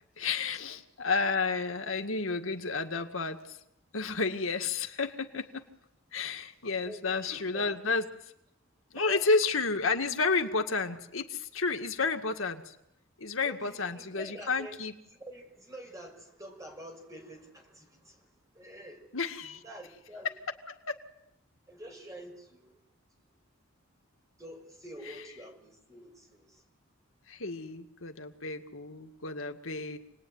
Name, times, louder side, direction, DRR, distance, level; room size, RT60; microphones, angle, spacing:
voice 1, 0.2-3.6 3.9-5.6 6.1-8.3 8.9-12.8 13.2-14.9 19.1-19.6 20.7-21.0 27.3-30.0, left 4 dB, 75° left, 5 dB, 2.0 m, -31 dB
voice 2, 6.8-7.8 8.9-9.2 13.4-14.8 15.1-19.1 19.6-20.3 21.7-22.8 23.2-23.3 24.4-26.6, right 1 dB, 15° right, 3 dB, 6.1 m, -47 dB
28.5 x 20.0 x 9.6 m, 0.80 s
head